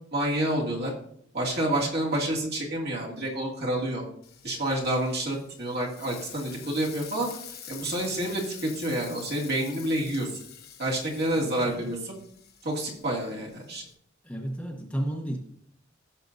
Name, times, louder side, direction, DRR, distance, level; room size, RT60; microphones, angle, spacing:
voice 1, 0.1-0.9 1.3-4.0 4.4-7.3 7.7-10.4 10.8-12.1 12.6-13.8, right 1 dB, 55° right, -3 dB, 2.5 m, -28 dB
Frying (food), 4.2-13.9, left 9 dB, 50° left, 1.2 m, -47 dB
voice 2, 11.4-11.9 14.2-15.4, right 1 dB, 5° left, 0 dB, 1.1 m, -32 dB
16.0 x 6.8 x 2.7 m, 0.68 s
head